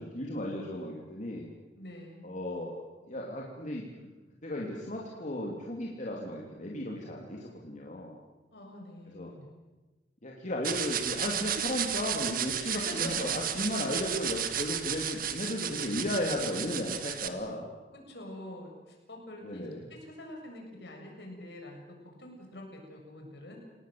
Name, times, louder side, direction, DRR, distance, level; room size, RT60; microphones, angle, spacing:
voice 1, 0.0-1.5 2.2-2.7 3.1-3.8 4.4-8.2 9.1-9.3 10.2-17.7 19.4-19.9, left 1 dB, 45° left, -2 dB, 3.2 m, -35 dB
voice 2, 1.8-2.3 8.5-9.5 12.7-13.4 18.1-21.8 22.2-23.6, left 1 dB, 70° left, 1 dB, 7.1 m, -45 dB
sound 1, 10.6-17.3, right 9 dB, 55° right, 1.6 m, -33 dB
29.0 x 19.0 x 7.8 m, 1.2 s
head